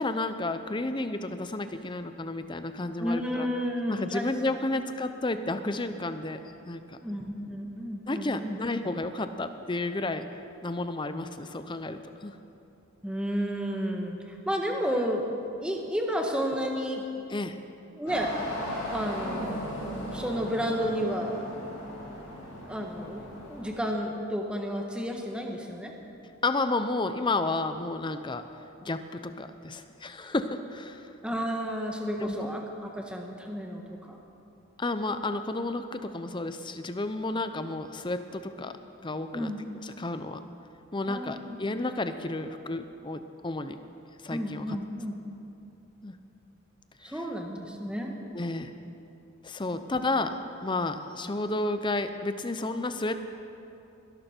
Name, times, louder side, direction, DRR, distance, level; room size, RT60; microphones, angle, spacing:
voice 1, 0.0-3.5 3.9-7.0 8.1-10.3 10.6-12.4 17.3-17.6 26.4-28.4 28.8-31.1 32.2-32.3 34.8-38.8 39.0-40.4 40.9-43.8 44.2-44.8 46.0-46.2 48.3-48.7 49.4-50.4 50.6-53.2, left 2 dB, 25° left, 9 dB, 0.6 m, -31 dB
voice 2, 3.0-4.3 4.8-4.9 7.0-8.6 13.0-15.3 15.6-17.0 17.9-18.3 18.9-19.6 20.1-21.4 22.7-25.9 31.2-34.2 39.3-39.6 41.1-41.6 44.3-45.2 47.0-48.1, equal, 5° right, 1 dB, 1.3 m, -31 dB
sound 1, 18.1-23.8, left 1 dB, 60° left, 4.5 m, -37 dB
21.5 x 12.0 x 4.5 m, 2.8 s
head